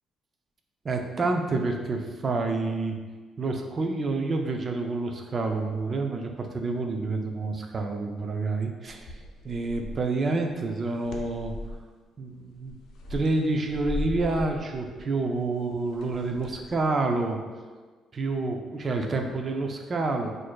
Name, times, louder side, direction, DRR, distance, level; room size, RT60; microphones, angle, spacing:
voice 1, 0.8-3.0 3.4-9.2 9.4-11.5 12.2-12.7 13.1-17.4 18.1-20.3, right 3 dB, 30° right, 3 dB, 0.4 m, -28 dB
sound 1, 8.8-10.2 10.7-11.9 12.5-16.8, left 2 dB, 75° left, 0.5 m, -38 dB
6.1 x 2.5 x 2.3 m, 1.4 s
cardioid pair, 155°, 0 cm